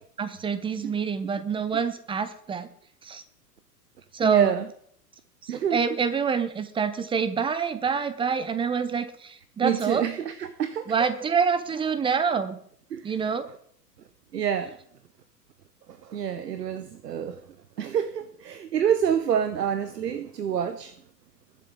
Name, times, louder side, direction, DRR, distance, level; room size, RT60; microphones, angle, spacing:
voice 1, 0.2-2.7 3.0-3.2 4.1-4.5 5.4-10.1 10.9-12.6 13.0-13.5, right 6 dB, 10° right, 13 dB, 0.6 m, -26 dB
voice 2, 4.2-4.6 5.5-5.8 9.6-10.9 12.9-13.1 14.3-14.8 15.9-17.4 17.8-20.9, right 8 dB, 75° right, 12 dB, 0.9 m, -27 dB
21.5 x 7.8 x 3.8 m, 0.65 s
figure-of-eight pair, 100°, 50 cm